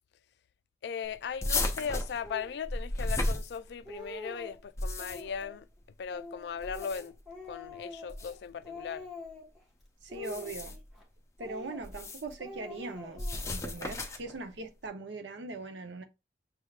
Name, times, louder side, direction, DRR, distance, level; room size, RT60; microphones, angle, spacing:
voice 1, 0.8-5.7 6.0-7.2 7.5-9.1, left 7 dB, 60° left, 0.3 m, -38 dB
sound 1, 1.4-4.0 4.6-5.4 6.6-7.3 8.1-8.3 10.1-10.9 11.8-12.3 13.2-14.4, left 2 dB, 15° left, 0.6 m, -34 dB
Speech, 2.2-2.6 3.3-3.4 3.7-4.6 5.0-5.6 6.1-8.4 8.6-9.6 10.1-11.0 11.4-12.1 12.4-13.6, left 2 dB, ahead, 1.3 m, -46 dB
voice 2, 10.0-10.8 11.4-16.0, right 2 dB, 80° right, 0.7 m, -41 dB
6.1 x 3.3 x 2.3 m
head